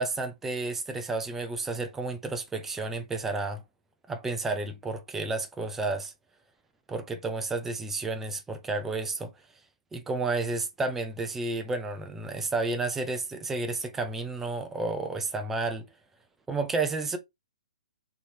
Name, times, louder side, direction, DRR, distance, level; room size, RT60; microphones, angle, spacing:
voice 1, 0.0-3.6 4.1-6.1 6.9-9.3 9.9-15.9 16.5-17.2, right 3 dB, 10° right, 0.6 m, -31 dB
3.5 x 3.0 x 4.0 m
hypercardioid pair, 155°, 4 cm